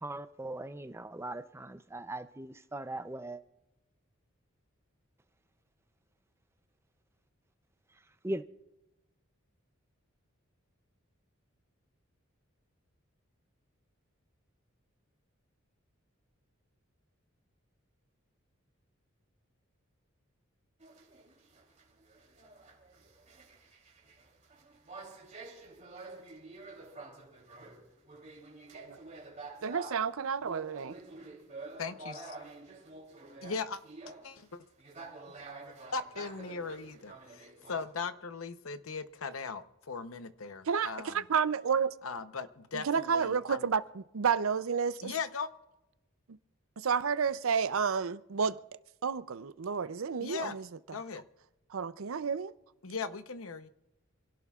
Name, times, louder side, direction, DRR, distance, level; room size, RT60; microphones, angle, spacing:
voice 1, 0.0-3.4 8.2-8.4, right 1 dB, 10° right, 0.5 m, -39 dB
sound 1, 20.8-37.8, right 3 dB, 35° right, 3.3 m, -49 dB
voice 2, 29.6-31.0 40.7-41.9 42.7-45.1 46.8-48.6 49.0-50.7 51.7-52.5, right 6 dB, 75° right, 0.5 m, -31 dB
voice 3, 31.8-32.4 33.4-33.8 34.2-34.6 35.6-41.3 42.0-43.7 45.0-45.5 50.2-50.6 50.9-51.2 52.8-53.7, left 5 dB, 80° left, 0.9 m, -39 dB
27.5 x 17.0 x 2.4 m
head